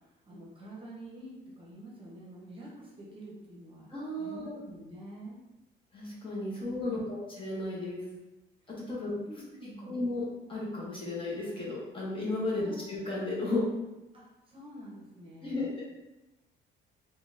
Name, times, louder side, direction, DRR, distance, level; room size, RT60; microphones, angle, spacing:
voice 1, 0.3-3.9 4.2-5.4 6.5-7.2 9.3-10.0 12.5-12.9 14.1-15.7, right 1 dB, 25° right, -4 dB, 0.8 m, -47 dB
voice 2, 3.9-4.6 5.9-8.0 8.9-9.1 9.8-13.6 15.4-15.8, left 2 dB, 25° left, -5 dB, 0.8 m, -34 dB
3.6 x 2.2 x 2.5 m, 1.0 s
cardioid pair, 125°, 20 cm